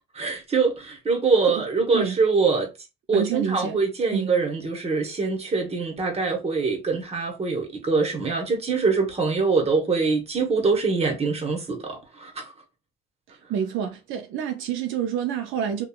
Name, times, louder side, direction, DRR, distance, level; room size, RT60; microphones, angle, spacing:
voice 1, 0.1-2.7 3.1-12.5, right 4 dB, 30° right, 1.0 m, -24 dB
voice 2, 3.1-3.8 4.1-4.3 13.5-15.9, right 8 dB, 85° right, 0.4 m, -28 dB
2.9 x 2.3 x 2.3 m
cardioid pair, 90°, 20 cm